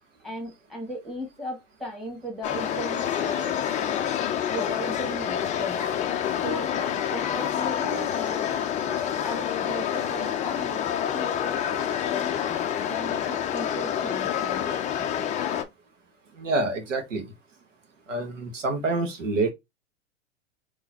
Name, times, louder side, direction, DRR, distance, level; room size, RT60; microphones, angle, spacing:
voice 1, 0.2-4.1 4.5-5.9 6.4-12.3 12.8-14.8, equal, ahead, 1.8 m, -37 dB
sound 1, 2.4-15.6, left 9 dB, 20° left, 0.5 m, -28 dB
voice 2, 16.4-17.2 18.1-19.5, right 2 dB, 75° right, 1.4 m, -27 dB
3.8 x 3.0 x 2.7 m
hypercardioid pair, 105°, 38 cm